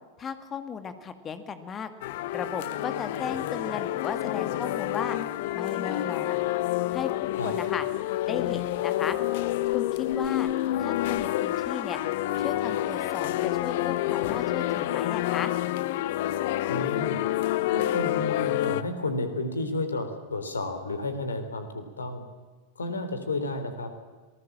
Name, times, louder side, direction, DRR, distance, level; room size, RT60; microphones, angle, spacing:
voice 1, 0.2-1.9 2.2-5.2 5.5-6.4 6.9-7.1 7.4-7.9 8.3-9.2 9.7-10.5 10.8-12.0 12.4-15.5, left 6 dB, 25° left, 10 dB, 2.2 m, -35 dB
sound 1, 2.0-18.8, left 14 dB, 50° left, 0.9 m, -28 dB
voice 2, 16.7-17.2 17.7-22.2 22.8-23.9, left 2 dB, 75° left, 9 dB, 3.5 m, -32 dB
26.5 x 19.0 x 7.4 m, 1.3 s
figure-of-eight pair, 90°, 0 cm